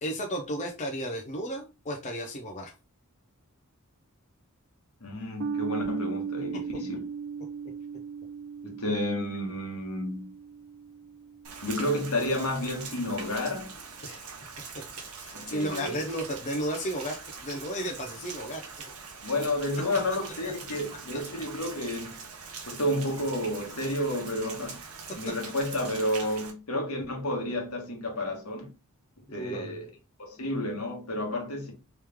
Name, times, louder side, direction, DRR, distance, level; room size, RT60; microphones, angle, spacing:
voice 1, 0.0-2.7 14.0-14.2 15.2-18.6 25.2-25.4 29.4-29.8, equal, 35° left, 0.5 m, -33 dB
voice 2, 5.0-7.1 8.6-10.3 11.6-13.7 15.3-16.0 19.2-22.2 22.7-24.8 25.1-28.7 29.3-29.9 30.2-31.7, left 1 dB, 70° left, 1.3 m, -31 dB
sound 1, 5.4-12.1, right 6 dB, 60° right, 0.4 m, -37 dB
Rain, 11.4-26.5, right 5 dB, 75° right, 0.8 m, -43 dB
3.1 x 3.0 x 3.4 m
head